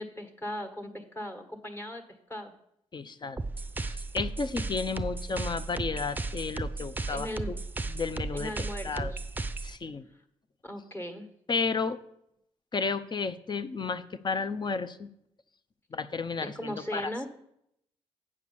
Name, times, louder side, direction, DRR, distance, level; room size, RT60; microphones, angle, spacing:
voice 1, 0.0-2.0 2.3-2.5 7.1-7.5 8.3-9.2 10.6-11.3 16.4-17.3, left 1 dB, 20° left, 5 dB, 1.5 m, -38 dB
voice 2, 2.9-3.4 3.8-7.6 7.9-9.1 9.6-10.1 11.5-12.0 12.7-15.1 15.9-17.3, left 4 dB, 40° left, 12 dB, 0.6 m, -33 dB
sound 1, 3.4-9.8, right 3 dB, 15° right, 0.6 m, -35 dB
8.6 x 4.8 x 7.0 m, 0.76 s
cardioid pair, 60°, 12 cm